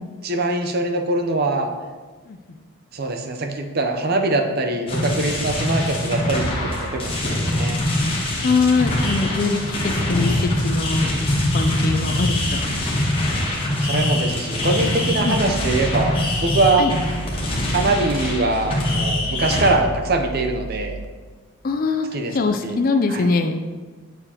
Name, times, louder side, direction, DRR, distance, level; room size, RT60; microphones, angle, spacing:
voice 1, 0.2-1.7 2.9-7.8 13.8-16.9 17.7-21.0 22.1-22.3 22.6-22.8 23.1-23.3, right 2 dB, 45° right, 5 dB, 0.6 m, -23 dB
sound 1, 4.9-19.7, left 1 dB, 25° left, 1.1 m, -23 dB
voice 2, 8.4-11.1 11.5-13.1 15.2-15.4 16.8-16.9 21.6-23.6, left 3 dB, 40° left, 6 dB, 0.4 m, -22 dB
sound 2, 15.3-21.0, right 4 dB, 85° right, 0.6 m, -34 dB
6.9 x 6.7 x 2.9 m, 1.4 s
head